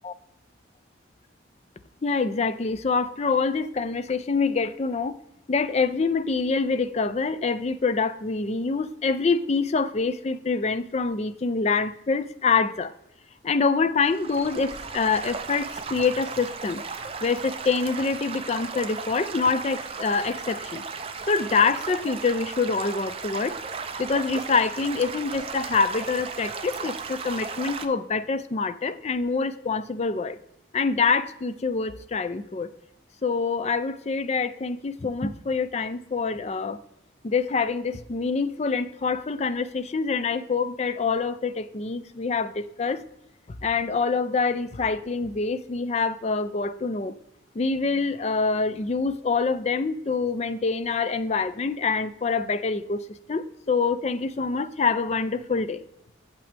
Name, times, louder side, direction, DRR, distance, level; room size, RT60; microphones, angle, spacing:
voice 1, 2.0-5.2 5.5-12.9 13.4-16.8 17.2-20.8 21.3-23.5 24.0-30.4 30.7-32.7 33.2-36.8 37.2-43.0 43.5-47.2 47.6-53.0 53.3-55.8, left 4 dB, 35° left, 13 dB, 0.4 m, -25 dB
Stream / Gurgling / Trickle dribble, 14.0-27.9, right 5 dB, 30° right, 0.5 m, -35 dB
8.6 x 7.6 x 3.4 m, 0.84 s
head